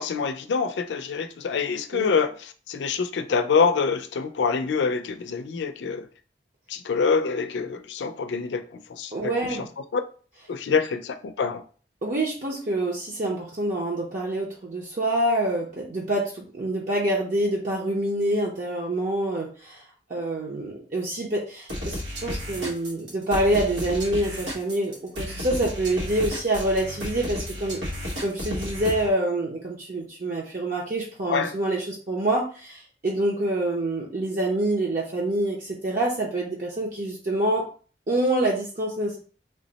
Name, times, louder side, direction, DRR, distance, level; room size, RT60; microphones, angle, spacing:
voice 1, 0.0-6.1 6.7-8.6 8.9-9.3 9.9-10.0 10.5-11.6 31.3-31.5, left 5 dB, 90° left, 0.4 m, -25 dB
voice 2, 9.1-9.7 12.0-19.8 20.1-27.8 28.2-37.6 38.1-39.2, right 1 dB, 45° right, 0.6 m, -26 dB
sound 1, 21.7-29.1, equal, 90° right, 1.1 m, -33 dB
3.4 x 2.0 x 3.9 m
head